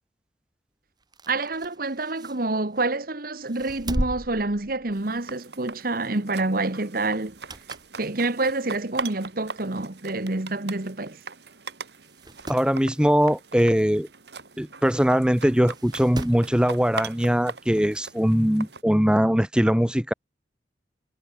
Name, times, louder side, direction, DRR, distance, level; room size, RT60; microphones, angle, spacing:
sound 1, 1.0-3.0 3.4-5.3 5.7-5.9 7.2-8.0 8.5-8.6 9.4-9.5 9.8-9.9 10.1-10.2 11.0-11.2 11.5-11.6 12.0-12.7 14.5-14.6 15.7-16.5 17.8-17.9, equal, 25° right, 4.0 m, -36 dB
voice 1, 1.3-7.4 7.9-11.2, right 2 dB, 55° right, 1.5 m, -27 dB
sound 2, 4.9-18.8, right 4 dB, 70° right, 2.6 m, -41 dB
voice 2, 12.5-14.1 14.6-20.1, equal, 5° right, 1.0 m, -21 dB
head